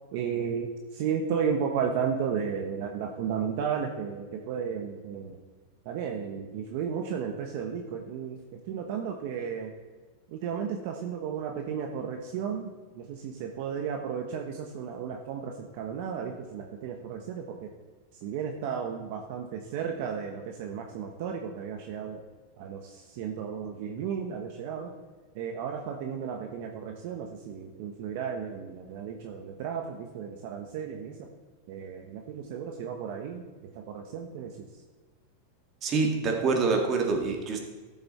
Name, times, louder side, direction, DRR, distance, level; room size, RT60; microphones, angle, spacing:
voice 1, 0.1-5.4 5.8-9.7 10.3-17.7 18.2-22.2 22.6-24.9 25.3-31.3 31.7-33.4 33.7-34.7, right 7 dB, 55° right, 3 dB, 1.1 m, -34 dB
voice 2, 35.8-37.6, right 4 dB, 30° right, 2 dB, 2.0 m, -26 dB
13.5 x 7.8 x 4.3 m, 1.3 s
supercardioid pair, 145°, 0 cm